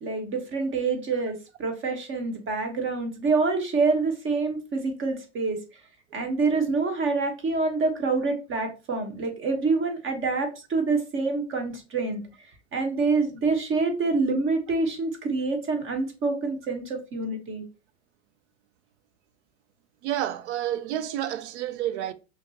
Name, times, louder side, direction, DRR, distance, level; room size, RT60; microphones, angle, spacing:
voice 1, 0.0-5.6 6.1-12.2 12.7-17.6, right 3 dB, 35° right, 1.2 m, -26 dB
voice 2, 20.0-22.1, right 11 dB, 75° right, 0.6 m, -29 dB
5.6 x 2.0 x 2.8 m
hypercardioid pair, 90°, 34 cm